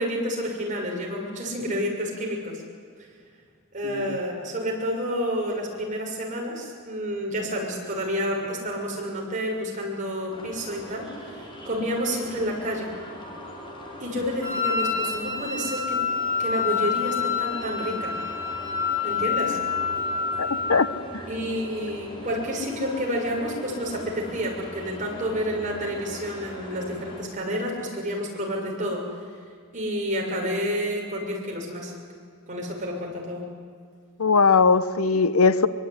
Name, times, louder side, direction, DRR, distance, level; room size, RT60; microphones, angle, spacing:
voice 1, 0.0-2.6 3.7-12.9 14.0-16.0 16.4-18.1 19.0-19.6 21.3-29.0 29.7-31.9 32.5-33.5, equal, 35° right, 6.8 m, -29 dB
sound 1, 10.3-27.2, equal, 25° left, 4.6 m, -41 dB
Wind instrument woodwind instrument, 14.4-21.0, left 6 dB, 15° right, 4.3 m, -27 dB
voice 2, 20.4-20.9 34.2-35.7, left 4 dB, 85° left, 1.1 m, -19 dB
24.0 x 24.0 x 10.0 m
head